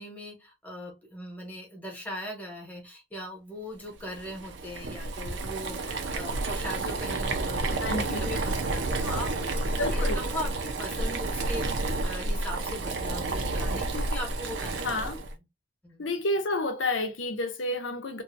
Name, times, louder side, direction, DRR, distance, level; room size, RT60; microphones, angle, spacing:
voice 1, 0.0-15.3 15.8-16.1, left 1 dB, 10° left, 1.1 m, -39 dB
Boiling, 4.0-15.3, right 2 dB, 70° right, 0.5 m, -30 dB
voice 2, 7.8-8.3 9.8-10.2 14.8-15.2 16.0-18.2, left 2 dB, 85° left, 0.8 m, -30 dB
2.7 x 2.3 x 2.5 m
head